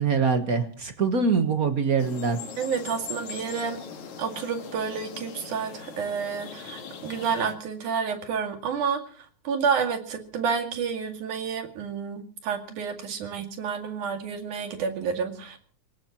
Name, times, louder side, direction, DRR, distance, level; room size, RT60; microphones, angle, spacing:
voice 1, 0.0-2.4, right 5 dB, 50° right, 7 dB, 1.0 m, -24 dB
sound 1, 2.0-7.5, left 6 dB, 70° left, 3.2 m, -40 dB
voice 2, 2.6-3.8 4.2-15.6, right 6 dB, 80° right, 5 dB, 3.7 m, -30 dB
26.5 x 17.5 x 3.0 m, 0.40 s
omnidirectional pair, 3.5 m